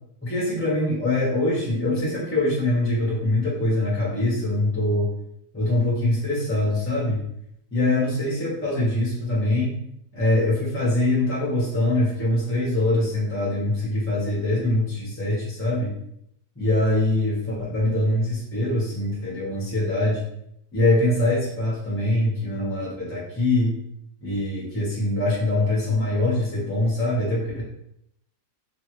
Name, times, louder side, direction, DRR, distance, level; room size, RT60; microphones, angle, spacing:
voice 1, 0.2-5.1 5.5-7.2 7.7-9.7 10.1-15.9 16.6-20.2 20.7-23.8 24.2-27.6, left 1 dB, 10° left, -6 dB, 0.7 m, -23 dB
2.8 x 2.4 x 3.0 m, 0.76 s
omnidirectional pair, 1.8 m